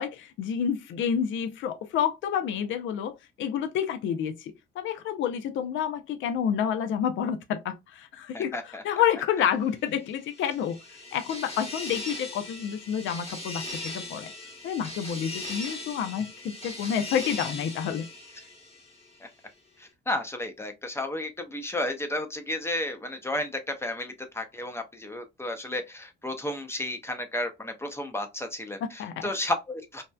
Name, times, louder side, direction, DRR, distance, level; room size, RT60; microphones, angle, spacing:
voice 1, 0.0-3.1 3.4-8.6 8.8-10.8 11.1-14.3 14.6-18.1 29.0-29.3, left 8 dB, 75° left, 0.5 m, -29 dB
voice 2, 8.3-8.8 19.2-19.3 19.8-30.0, left 1 dB, 15° left, 0.6 m, -33 dB
sound 1, 10.1-19.2, left 2 dB, 30° left, 1.0 m, -39 dB
2.7 x 2.1 x 2.2 m
cardioid pair, 90°, 20 cm